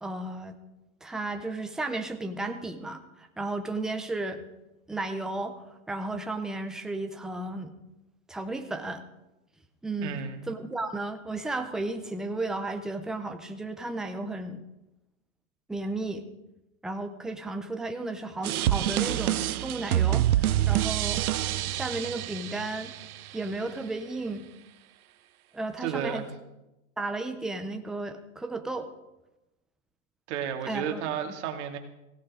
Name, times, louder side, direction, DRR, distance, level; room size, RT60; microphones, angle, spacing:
voice 1, 0.0-0.6 1.0-4.4 4.9-7.7 8.3-9.0 9.8-10.2 10.5-14.6 15.7-16.2 16.8-21.2 21.7-22.9 23.3-24.5 25.5-26.2 27.0-28.9 30.7-31.0, right 2 dB, ahead, 6 dB, 0.4 m, -34 dB
voice 2, 10.0-10.4 25.8-26.3 30.3-31.8, right 8 dB, 50° right, 4 dB, 2.2 m, -32 dB
sound 1, 18.4-23.4, right 13 dB, 80° right, 0.7 m, -27 dB
17.0 x 16.5 x 3.6 m, 0.96 s
hypercardioid pair, 130°, 43 cm